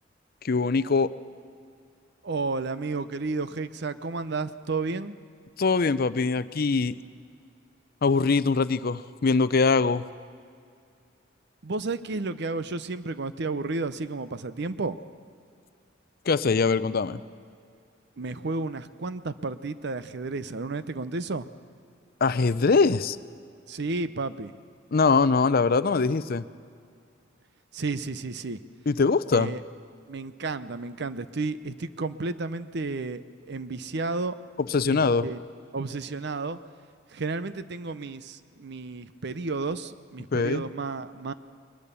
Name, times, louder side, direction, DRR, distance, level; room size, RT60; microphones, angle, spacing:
voice 1, 0.4-1.1 5.6-7.0 8.0-10.0 16.3-17.2 22.2-23.2 24.9-26.4 28.9-29.5 34.6-35.3 40.3-40.6, left 4 dB, 50° left, 15 dB, 0.5 m, -22 dB
voice 2, 2.2-5.2 11.6-15.0 18.2-21.5 23.7-24.5 27.7-28.6 29.3-29.6 30.1-34.4 34.9-35.4 35.7-36.6 37.1-41.3, right 3 dB, 60° right, 13 dB, 0.7 m, -32 dB
21.5 x 20.5 x 6.9 m, 2.3 s
head